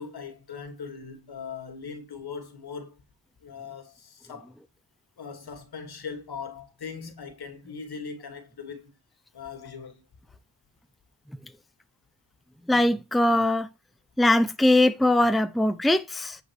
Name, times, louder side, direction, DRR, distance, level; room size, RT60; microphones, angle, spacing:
voice 1, 0.0-3.0 3.4-4.5 5.2-8.9 9.3-10.0, left 5 dB, 80° left, 3.1 m, -40 dB
voice 2, 12.7-13.7 14.2-16.4, left 1 dB, ahead, 0.7 m, -21 dB
9.8 x 5.4 x 4.8 m
wide cardioid pair, 120°, 38 cm